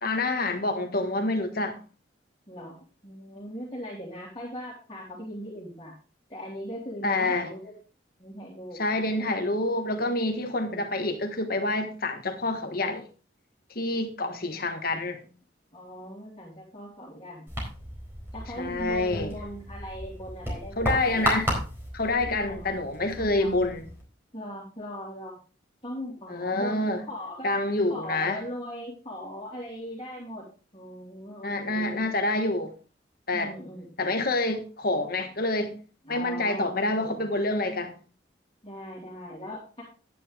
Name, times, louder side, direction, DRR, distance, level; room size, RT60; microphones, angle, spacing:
voice 1, 0.0-1.8 7.0-7.5 8.8-13.0 13.7-15.3 18.6-19.3 20.8-21.5 21.9-23.8 26.3-27.0 27.4-28.4 31.4-32.7 33.3-33.5 34.0-35.7 36.1-37.9, left 2 dB, 50° left, 1.4 m, -27 dB
voice 2, 2.5-5.9 6.3-7.7 8.2-8.8 9.1-9.3 10.6-11.0 14.2-14.8 15.7-17.6 18.3-21.5 22.3-22.7 23.1-23.5 24.3-25.4 25.8-27.5 27.9-30.5 30.7-32.1 33.3-34.2 36.0-37.2 38.6-39.8, equal, 30° left, 3.0 m, -40 dB
sound 1, 17.5-24.0, equal, 10° right, 4.3 m, -34 dB
11.0 x 9.2 x 3.5 m
head